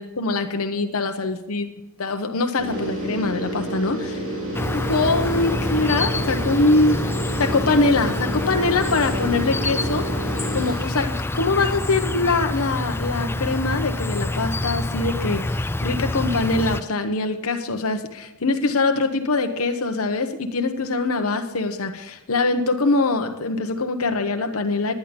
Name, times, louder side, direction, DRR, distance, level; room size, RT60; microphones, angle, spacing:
voice 1, 0.0-1.7 2.0-4.2 4.7-7.0 7.4-10.1 10.5-24.9, left 3 dB, 90° left, 6 dB, 1.0 m, -23 dB
sound 1, 2.6-11.3, right 1 dB, 75° right, 5.5 m, -29 dB
Insect, 4.5-16.8, left 2 dB, 10° left, 0.3 m, -27 dB
10.5 x 10.0 x 5.2 m, 0.88 s
head